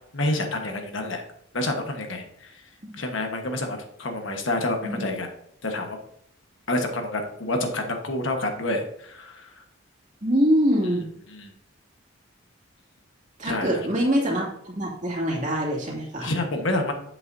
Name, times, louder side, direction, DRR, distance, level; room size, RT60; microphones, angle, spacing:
voice 1, 0.1-1.2 1.5-2.5 3.0-5.3 5.6-6.0 6.7-9.5 11.3-11.5 13.4-13.7 16.2-16.9, left 2 dB, 70° left, 4 dB, 1.3 m, -28 dB
voice 2, 4.8-5.1 10.2-11.1 13.4-16.3, equal, 35° right, -3 dB, 2.5 m, -24 dB
8.6 x 7.7 x 2.7 m, 0.73 s
head